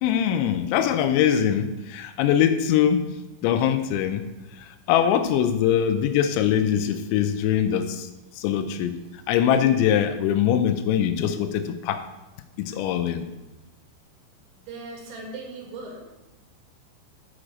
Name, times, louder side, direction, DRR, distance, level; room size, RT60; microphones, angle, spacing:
voice 1, 0.0-3.1 3.4-9.0 9.3-12.0 12.6-13.3, left 9 dB, 85° left, 9 dB, 2.9 m, -23 dB
voice 2, 14.6-16.0, right 3 dB, 75° right, 0 dB, 4.0 m, -38 dB
7.6 x 5.9 x 6.4 m, 1.0 s
omnidirectional pair, 5.3 m